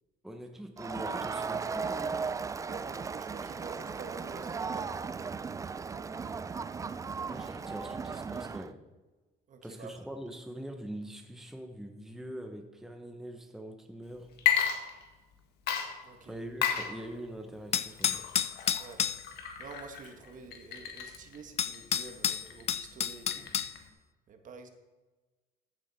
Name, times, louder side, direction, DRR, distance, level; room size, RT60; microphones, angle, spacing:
voice 1, 0.2-2.4 7.2-8.8 9.6-14.4 16.2-18.3, right 1 dB, ahead, 5 dB, 1.0 m, -43 dB
Crowd, 0.8-8.7, right 5 dB, 20° right, 0.3 m, -36 dB
voice 2, 2.7-5.0 9.5-9.9 16.0-16.4 18.8-19.0 19.6-23.5 24.3-24.7, right 4 dB, 50° right, 5 dB, 1.5 m, -48 dB
Water / Liquid, 14.3-15.3 15.7-23.9, left 9 dB, 70° left, 1.7 m, -34 dB
sound 1, 17.7-19.2 21.1-21.2 21.6-23.7, left 9 dB, 40° left, 0.5 m, -30 dB
14.0 x 7.5 x 4.1 m, 1.2 s
cardioid pair, 110°, 17 cm